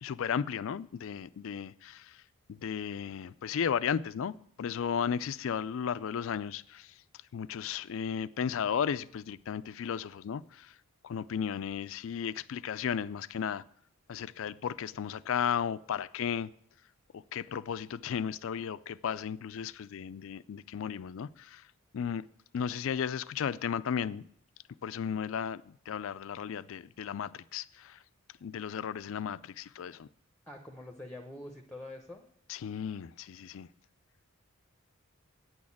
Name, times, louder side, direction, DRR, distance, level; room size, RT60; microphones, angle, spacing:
voice 1, 0.0-2.2 2.5-6.9 7.3-10.7 11.0-13.6 14.1-16.5 17.1-21.6 21.9-22.3 22.5-24.3 24.8-28.0 28.4-30.1 32.5-33.7, left 7 dB, 60° left, 0.3 m, -34 dB
voice 2, 30.5-32.2, left 1 dB, 5° left, 0.7 m, -45 dB
9.2 x 6.4 x 8.5 m
head